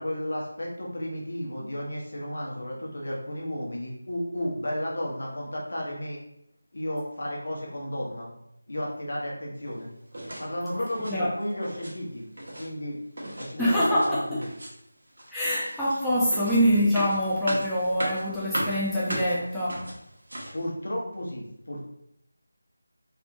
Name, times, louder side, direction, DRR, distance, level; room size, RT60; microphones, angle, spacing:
voice 1, 0.0-6.2 6.7-8.3 8.7-9.9 10.4-12.3 12.6-13.0 13.4-14.5 20.5-21.9, equal, 65° left, -2 dB, 1.1 m, -33 dB
sound 1, 10.1-10.5 10.8-11.2 11.5-11.9 12.2-12.7 13.2-14.1 14.4-14.9 15.2-20.6, right 1 dB, 60° right, 1.2 m, -36 dB
voice 2, 13.6-14.4 15.3-19.9, equal, ahead, -11 dB, 0.3 m, -25 dB
3.4 x 2.8 x 2.6 m, 0.78 s
figure-of-eight pair, 175°, 0 cm